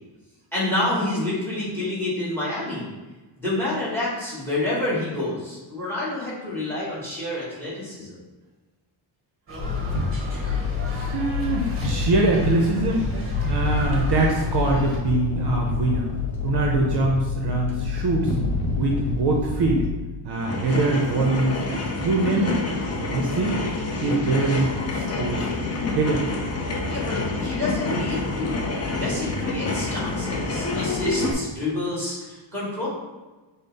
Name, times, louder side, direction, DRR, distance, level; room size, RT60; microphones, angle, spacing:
voice 1, 0.5-2.9 3.4-8.2 26.9-28.6 28.9-32.9, left 2 dB, 5° left, -6 dB, 1.4 m, -28 dB
sound 1, 9.5-15.0, right 1 dB, 25° right, 0.9 m, -35 dB
sound 2, 9.6-19.9, left 4 dB, 85° left, 0.8 m, -27 dB
voice 2, 10.9-13.1 13.4-16.1 16.4-18.3 18.8-19.8 20.2-21.6 22.0-22.6 22.9-23.6 24.0-25.5 25.9-26.2, right 2 dB, 50° right, -1 dB, 0.6 m, -23 dB
sound 3, 20.3-31.3, left 3 dB, 35° left, 0.5 m, -28 dB
5.2 x 2.1 x 4.0 m, 1.2 s
wide cardioid pair, 170°, 50 cm